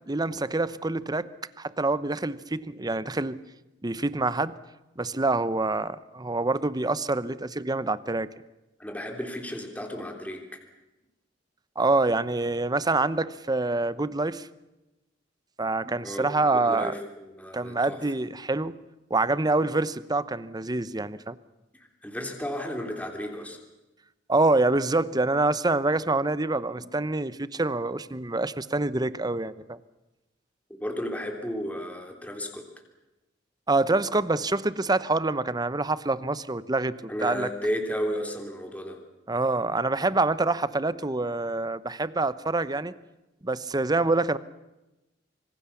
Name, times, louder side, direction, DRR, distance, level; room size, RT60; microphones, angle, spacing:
voice 1, 0.1-1.3 1.6-3.4 3.8-4.6 5.0-8.3 11.8-14.5 15.6-16.9 17.5-18.8 19.1-21.4 24.3-29.8 33.7-37.5 39.3-42.9 43.4-44.4, right 2 dB, 20° right, 16 dB, 0.9 m, -26 dB
voice 2, 8.8-10.6 16.0-16.3 16.5-18.0 22.0-23.6 26.8-26.9 30.8-32.6 37.1-39.0, equal, 10° left, 2 dB, 3.2 m, -33 dB
26.0 x 25.0 x 7.1 m, 0.99 s
head